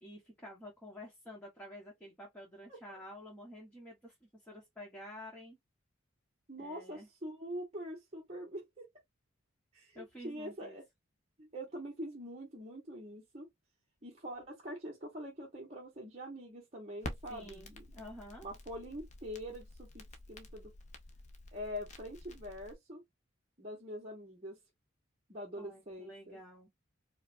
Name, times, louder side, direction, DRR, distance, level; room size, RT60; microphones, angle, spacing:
voice 1, 0.0-4.1 4.4-5.6 6.6-7.1 9.9-10.8 17.3-18.5 25.6-26.7, left 1 dB, 5° left, 1.2 m, -50 dB
voice 2, 6.5-8.9 9.7-10.8 11.4-13.5 14.0-17.9 18.4-20.7 21.5-23.0 23.6-24.6 25.3-26.4, equal, 30° right, 1.1 m, -44 dB
Crackle, 17.0-22.7, left 1 dB, 35° left, 0.7 m, -49 dB
4.8 x 2.2 x 2.5 m
head